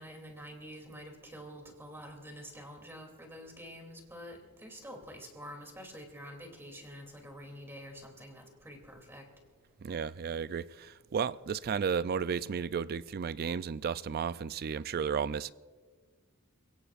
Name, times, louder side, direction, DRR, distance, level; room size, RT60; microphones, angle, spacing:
voice 1, 0.0-9.2, equal, 10° right, 2.8 m, -47 dB
voice 2, 9.8-15.5, right 6 dB, 45° right, 0.4 m, -33 dB
29.0 x 17.0 x 2.5 m
head